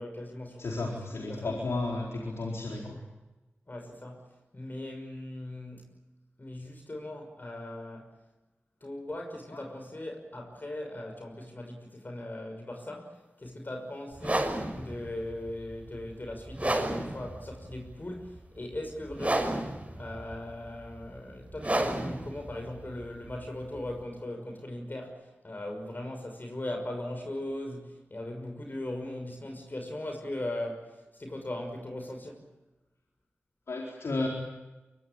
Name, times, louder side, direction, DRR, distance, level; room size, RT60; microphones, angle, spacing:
voice 1, 0.0-1.6 3.7-4.3 4.5-5.9 6.4-8.1 8.8-19.7 19.9-32.5, left 1 dB, 45° left, 6.0 m, -39 dB
voice 2, 0.6-3.0 9.5-9.6 33.7-34.3, left 2 dB, 85° left, 4.4 m, -33 dB
sound 1, 14.2-24.0, right 1 dB, 30° right, 6.2 m, -33 dB
24.0 x 23.0 x 8.9 m
cardioid pair, 40°, 5 cm